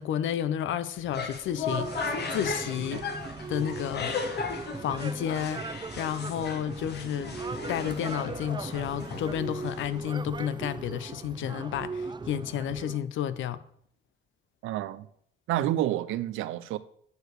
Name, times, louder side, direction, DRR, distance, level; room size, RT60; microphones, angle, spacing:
voice 1, 0.0-1.9 2.3-3.0 3.5-4.4 4.8-7.4 7.7-13.6, left 10 dB, 75° left, 0.7 m, -31 dB
sound 1, 1.0-10.0, left 4 dB, 55° left, 1.5 m, -36 dB
sound 2, 1.7-13.0, right 4 dB, 20° right, 0.6 m, -38 dB
voice 2, 14.6-15.1 15.5-16.8, right 13 dB, 90° right, 0.6 m, -29 dB
9.4 x 4.7 x 6.5 m
cardioid pair, 90°, 20 cm